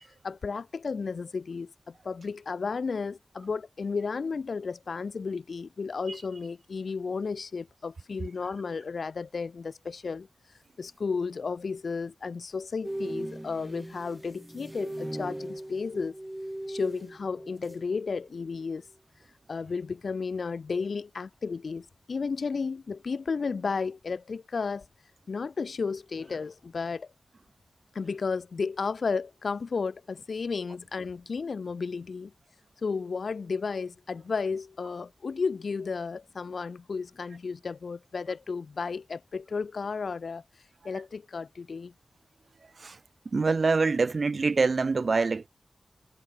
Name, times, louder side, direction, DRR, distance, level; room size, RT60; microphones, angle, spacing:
voice 1, 0.2-10.3 10.8-16.1 16.7-18.8 19.5-24.9 25.3-27.1 27.9-32.3 32.8-40.4 40.8-41.9, left 5 dB, 70° left, 1.1 m, -33 dB
sound 1, 12.8-18.0 18.2-18.5, right 1 dB, 10° right, 1.5 m, -39 dB
voice 2, 43.3-45.5, right 4 dB, 55° right, 1.6 m, -25 dB
wide cardioid pair, 100°, 0 cm